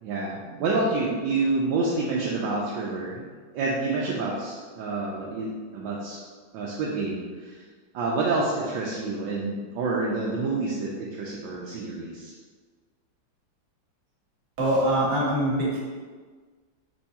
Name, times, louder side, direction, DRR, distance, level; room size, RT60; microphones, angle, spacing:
voice 1, 0.0-3.3 3.5-6.2 6.5-7.6 7.9-12.3, right 3 dB, 75° right, -4 dB, 1.3 m, -28 dB
voice 2, 14.6-15.8, right 1 dB, 60° right, -6 dB, 1.9 m, -23 dB
4.6 x 2.6 x 4.1 m, 1.5 s
omnidirectional pair, 2.2 m